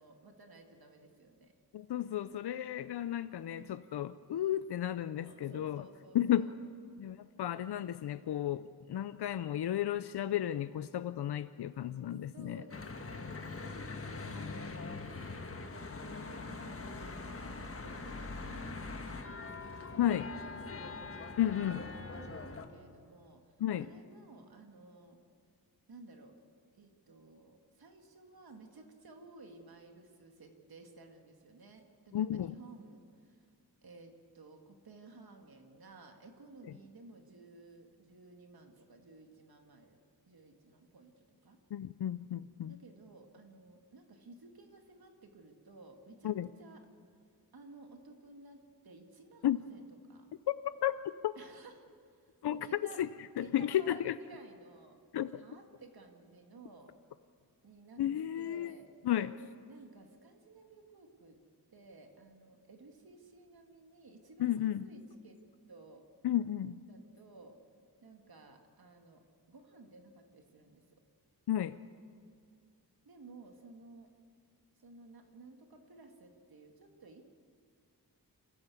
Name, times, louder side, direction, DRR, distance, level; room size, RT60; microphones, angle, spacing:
voice 1, 0.0-1.5 3.5-3.9 5.2-6.6 12.3-21.7 22.1-25.2 25.9-26.4 26.8-33.5 33.8-40.0 40.3-41.6 42.7-46.9 47.5-50.3 51.4-53.0 53.4-55.0 55.3-56.9 57.6-58.0 58.4-59.3 59.7-61.4 61.7-65.4 65.7-66.0 66.9-67.6 68.0-70.8 73.0-74.1 74.8-77.2, right 3 dB, 70° right, 4 dB, 2.0 m, -55 dB
voice 2, 1.7-5.8 6.1-6.5 7.0-12.6 20.0-20.3 21.4-21.8 23.6-23.9 32.1-32.5 41.7-42.7 46.2-46.5 49.4-49.6 50.5-50.6 50.8-51.3 52.4-52.7 53.0-53.1 53.4-54.2 55.1-55.4 58.0-58.7 59.0-59.3 64.4-64.9 66.2-66.8 71.5-71.8, left 11 dB, 90° left, 13 dB, 0.6 m, -33 dB
Church bell / Traffic noise roadway noise, 12.7-22.7, left 3 dB, 35° left, 1.4 m, -43 dB
26.5 x 14.5 x 8.4 m, 2.2 s
wide cardioid pair, 135°, 38 cm